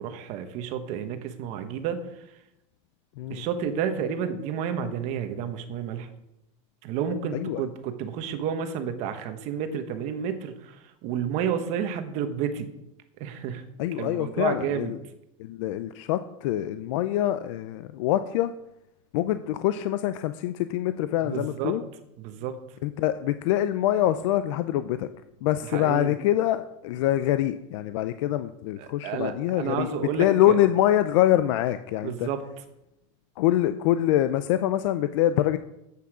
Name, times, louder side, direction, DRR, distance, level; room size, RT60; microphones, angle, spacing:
voice 1, 0.0-2.0 3.3-6.1 6.8-12.7 13.2-13.6 14.0-14.9 21.2-21.8 22.2-22.6 25.7-26.1 28.8-30.6 32.0-32.4, right 8 dB, 45° right, 9 dB, 1.1 m, -31 dB
voice 2, 13.8-15.0 15.4-18.5 19.1-21.8 22.8-25.1 25.4-29.9 30.2-32.3 33.4-35.6, left 13 dB, 70° left, 12 dB, 0.5 m, -25 dB
8.5 x 8.1 x 6.1 m, 0.85 s
supercardioid pair, 165°, 17 cm